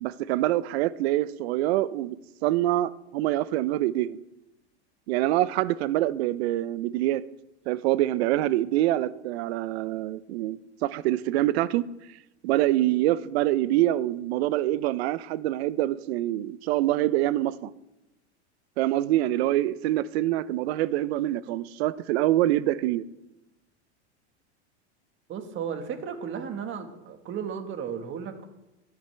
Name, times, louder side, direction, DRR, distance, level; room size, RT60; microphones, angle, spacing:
voice 1, 0.0-2.2 2.4-4.2 5.1-7.2 7.7-11.8 12.4-17.7 18.8-23.0, right 14 dB, 65° right, 0.6 m, -25 dB
voice 2, 25.3-28.5, right 7 dB, 35° right, 1.6 m, -34 dB
13.0 x 10.0 x 3.4 m
supercardioid pair, 120°, 34 cm